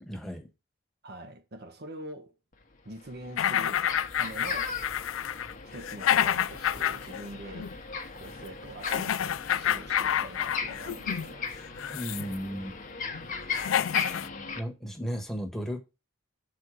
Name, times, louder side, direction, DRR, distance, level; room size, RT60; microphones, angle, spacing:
voice 1, 0.0-0.5 11.9-12.7 14.5-15.8, equal, ahead, 1.3 m, -35 dB
voice 2, 1.0-2.3 2.8-3.8 4.2-5.3 5.6-7.7 8.2-11.7, right 1 dB, 55° right, 1.1 m, -44 dB
sound 1, 2.5-2.6 3.0-14.6, left 5 dB, 40° left, 1.0 m, -38 dB
sound 2, 3.4-7.2 7.5-7.7 8.8-11.3 11.7-12.3 13.1-13.2 13.5-14.3, left 10 dB, 70° left, 0.4 m, -29 dB
6.5 x 4.2 x 6.2 m
head